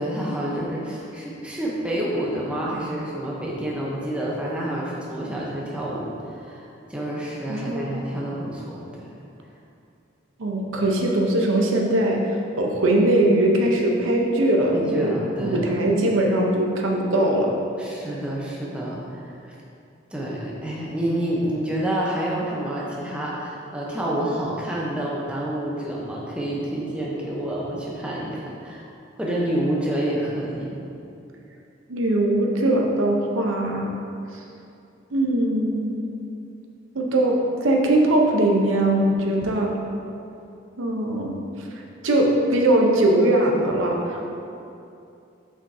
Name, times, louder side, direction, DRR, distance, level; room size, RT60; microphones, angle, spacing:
voice 1, 0.0-9.1 14.7-15.7 17.8-19.6 20.1-28.8 29.2-30.8, right 1 dB, 5° right, -5 dB, 0.7 m, -28 dB
voice 2, 7.5-8.0 10.4-12.2 12.6-15.1 15.4-17.5 31.9-33.9 35.1-36.0 36.9-39.7 40.8-41.4 42.0-44.3, right 1 dB, 90° right, 0 dB, 0.7 m, -21 dB
7.0 x 5.1 x 2.7 m, 2.6 s
head